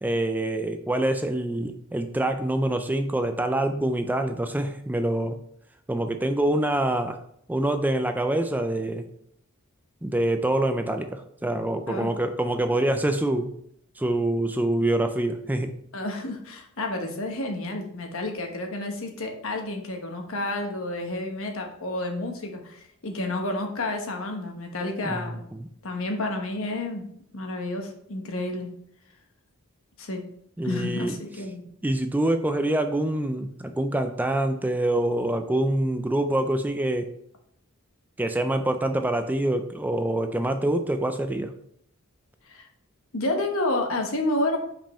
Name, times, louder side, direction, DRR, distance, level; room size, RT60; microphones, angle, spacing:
voice 1, 0.0-5.4 5.9-7.2 7.5-9.1 10.0-13.5 14.0-15.7 25.0-25.3 25.5-25.7 30.6-31.2 31.8-37.1 38.2-41.5, right 1 dB, 10° right, 7 dB, 0.4 m, -25 dB
voice 2, 15.9-25.5 25.8-27.0 27.3-28.7 30.0-30.2 30.6-31.7 42.4-42.7 43.1-44.6, left 2 dB, 65° left, 3 dB, 1.2 m, -30 dB
5.4 x 5.2 x 4.3 m, 0.70 s
head